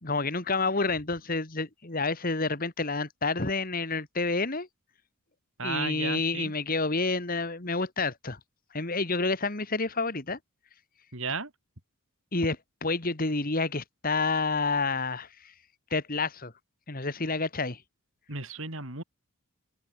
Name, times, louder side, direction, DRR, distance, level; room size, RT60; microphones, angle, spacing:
voice 1, 0.0-4.7 5.6-8.4 8.7-10.4 12.3-15.5 15.9-16.5 16.9-17.8, left 3 dB, 40° left, 2.1 m, -29 dB
voice 2, 5.6-6.5 11.1-11.5 18.3-19.0, right 4 dB, 65° right, 5.1 m, -34 dB
open air
head